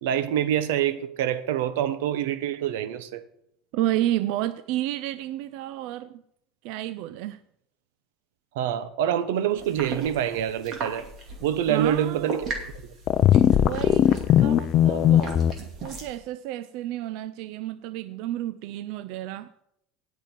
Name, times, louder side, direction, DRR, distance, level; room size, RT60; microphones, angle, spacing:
voice 1, 0.0-3.2 8.5-11.0 11.4-12.5, right 10 dB, 90° right, 0.9 m, -26 dB
voice 2, 3.7-6.2 6.6-7.4 11.7-12.4 13.6-19.5, right 14 dB, 60° right, 0.4 m, -31 dB
sound 1, 9.6-16.2, right 3 dB, 35° right, 2.4 m, -38 dB
sound 2, 13.1-15.5, left 11 dB, 35° left, 0.5 m, -19 dB
18.0 x 6.1 x 4.5 m
cardioid pair, 160°, 0 cm